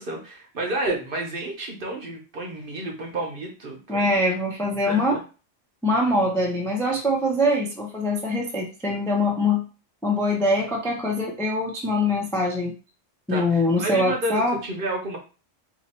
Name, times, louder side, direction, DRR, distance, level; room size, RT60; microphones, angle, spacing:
voice 1, 0.0-4.2 4.9-5.2 13.3-15.2, right 2 dB, 50° right, 1 dB, 0.9 m, -30 dB
voice 2, 3.9-5.2 5.8-9.6 10.0-12.7 13.3-14.6, left 1 dB, 5° left, -1 dB, 0.4 m, -23 dB
2.8 x 2.7 x 4.2 m, 0.34 s
omnidirectional pair, 1.3 m